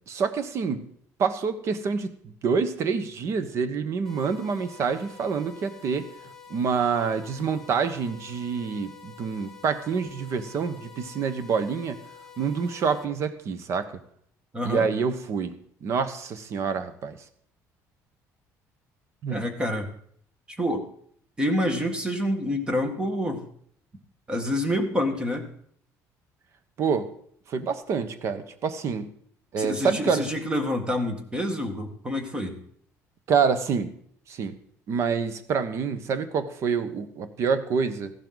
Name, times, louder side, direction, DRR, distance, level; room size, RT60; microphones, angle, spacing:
voice 1, 0.1-0.9 1.2-6.1 6.5-12.0 12.4-14.0 14.6-17.2 19.2-19.5 26.8-27.1 27.5-29.1 29.5-30.3 33.3-33.9 34.3-34.5 34.9-38.1, right 5 dB, 50° right, 12 dB, 1.2 m, -27 dB
sound 1, 4.0-13.0, left 6 dB, 5° left, 1.9 m, -48 dB
voice 2, 14.5-14.9 19.3-19.9 20.5-20.9 21.4-23.4 24.3-25.5 29.6-32.5, left 1 dB, 15° right, 6 dB, 1.7 m, -27 dB
15.0 x 12.0 x 4.0 m, 0.63 s
cardioid pair, 145°, 6 cm